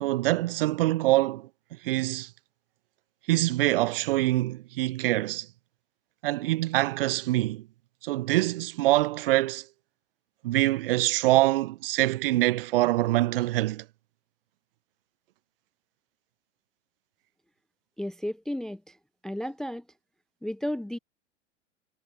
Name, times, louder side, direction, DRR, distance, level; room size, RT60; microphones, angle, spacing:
voice 1, 0.0-1.5 1.8-2.3 3.3-5.5 6.2-7.7 8.0-9.7 10.4-13.8, right 17 dB, 50° right, 0.6 m, -25 dB
voice 2, 18.0-19.0 19.2-19.8 20.4-21.0, equal, ahead, 0.6 m, -33 dB
figure-of-eight pair, 95°, 36 cm